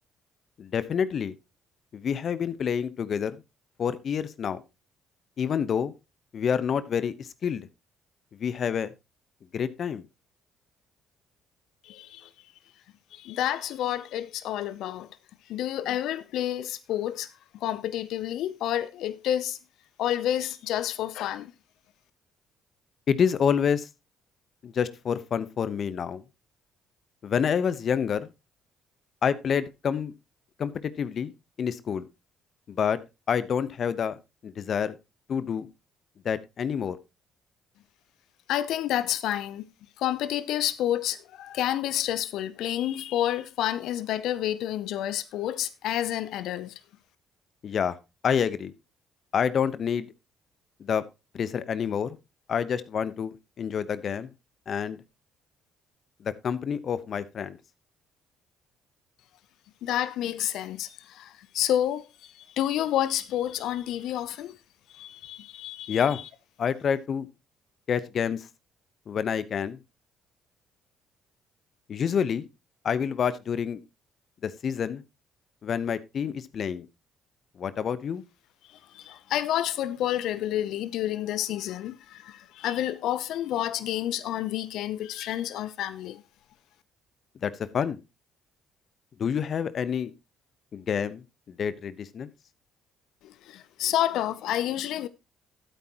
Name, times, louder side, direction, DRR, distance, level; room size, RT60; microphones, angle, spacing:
voice 1, 0.6-1.3 1.9-3.4 3.8-4.6 5.4-5.9 6.3-7.7 8.4-8.9 9.5-10.0 23.1-23.9 24.6-26.2 27.2-28.3 29.2-30.1 30.6-31.3 31.6-32.1 32.7-33.0 33.3-34.2 34.4-35.0 35.3-35.7 36.2-37.0 47.6-48.0 48.2-48.7 49.3-50.1 50.8-51.0 51.3-52.2 52.5-54.3 54.7-55.0 56.2-57.6 65.9-66.2 66.6-67.3 67.9-68.4 69.1-69.8 71.9-72.4 72.8-73.8 74.4-75.0 75.6-76.8 77.6-78.2 87.4-88.0 89.2-90.1 90.7-91.2 91.5-92.3, left 7 dB, 55° left, 1.0 m, -28 dB
voice 2, 11.8-12.3 13.1-15.1 15.5-17.3 17.6-19.6 20.0-21.5 38.5-39.6 40.0-46.7 59.8-64.6 64.9-66.3 78.7-86.2 93.2-95.1, left 12 dB, 70° left, 0.6 m, -29 dB
12.5 x 8.6 x 3.0 m
hypercardioid pair, 60°, 0 cm